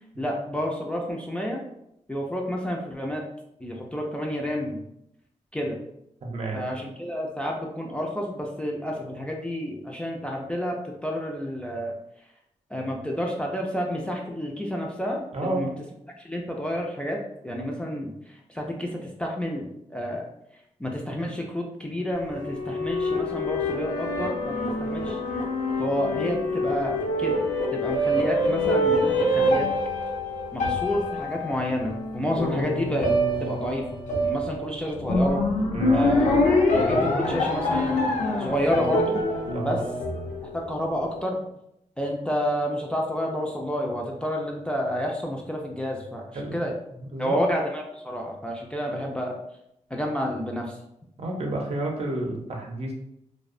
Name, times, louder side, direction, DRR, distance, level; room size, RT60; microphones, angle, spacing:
voice 1, 0.2-1.7 2.1-3.2 3.6-4.8 5.5-5.8 6.5-11.9 12.7-15.7 16.2-20.3 20.8-25.2 25.8-27.5 27.7-29.7 30.5-33.1 33.4-33.9 34.2-35.4 35.9-36.4 36.7-38.1 38.4-39.2 39.6-39.8 40.4-41.4 42.0-46.3 46.5-46.7 47.2-49.4 49.9-50.8, equal, 10° left, -1 dB, 0.3 m, -29 dB
voice 2, 6.2-6.6 15.3-15.7 35.7-36.4 39.5-39.8 46.3-46.6 47.0-47.4 51.2-52.9, right 2 dB, 55° right, 0 dB, 0.6 m, -30 dB
sound 1, 22.2-40.7, left 1 dB, 80° left, 0.5 m, -25 dB
2.6 x 2.0 x 2.5 m, 0.79 s
wide cardioid pair, 120°, 13 cm